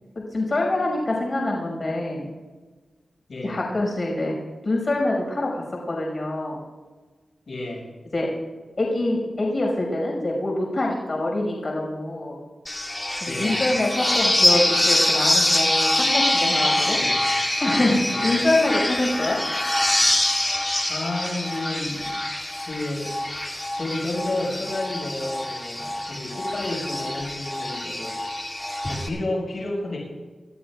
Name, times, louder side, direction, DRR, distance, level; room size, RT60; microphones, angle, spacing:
voice 1, 0.1-2.3 3.4-4.4 4.6-6.6 8.1-8.3 8.8-12.3 13.2-17.0 17.6-19.4, left 2 dB, 45° left, -2 dB, 5.8 m, -25 dB
voice 2, 7.5-7.9 13.3-13.6 17.0-17.2 18.1-18.4 20.9-22.1 22.6-23.2 23.7-28.2 28.9-30.0, left 2 dB, 65° left, -1 dB, 6.0 m, -31 dB
sound 1, 12.7-29.1, left 1 dB, 20° left, 2.8 m, -24 dB
28.0 x 13.5 x 2.5 m, 1.3 s
cardioid pair, 65°, 0 cm